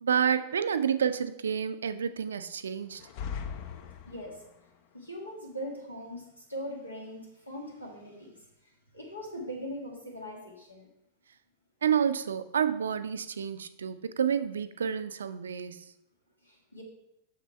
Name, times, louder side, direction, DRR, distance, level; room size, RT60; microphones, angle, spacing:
voice 1, 0.0-3.0 11.8-15.8, right 8 dB, 70° right, 12 dB, 0.4 m, -29 dB
sound 1, 2.9-4.6, left 7 dB, 45° left, 0.6 m, -39 dB
voice 2, 4.1-4.4 4.9-10.9 16.4-16.8, equal, 85° left, 0 dB, 1.9 m, -41 dB
6.6 x 6.6 x 4.3 m, 0.82 s
figure-of-eight pair, 90°, 0 cm